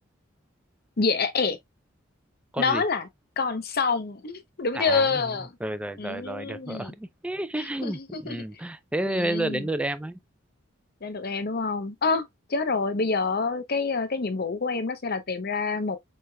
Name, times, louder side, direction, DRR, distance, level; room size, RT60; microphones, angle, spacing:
voice 1, 1.0-1.6 2.6-3.1 3.4-5.5 6.0-6.9 7.6-8.4 9.1-9.7 11.0-16.0, left 4 dB, 50° left, 0.8 m, -27 dB
voice 2, 4.7-5.3 5.6-10.2, right 1 dB, 5° right, 0.4 m, -31 dB
5.3 x 3.3 x 2.2 m
head